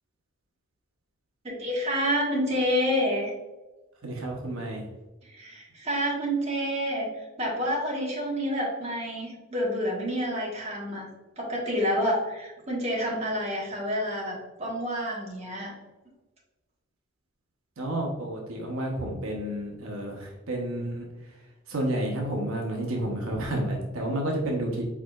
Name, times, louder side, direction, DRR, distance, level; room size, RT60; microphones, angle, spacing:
voice 1, 1.4-3.3 5.2-7.1 7.4-11.1 11.4-15.7, equal, 30° right, -4 dB, 1.3 m, -28 dB
voice 2, 4.0-4.8 17.8-21.1 21.7-24.8, right 1 dB, 75° right, 0 dB, 0.9 m, -30 dB
4.7 x 4.6 x 2.4 m, 1.1 s
head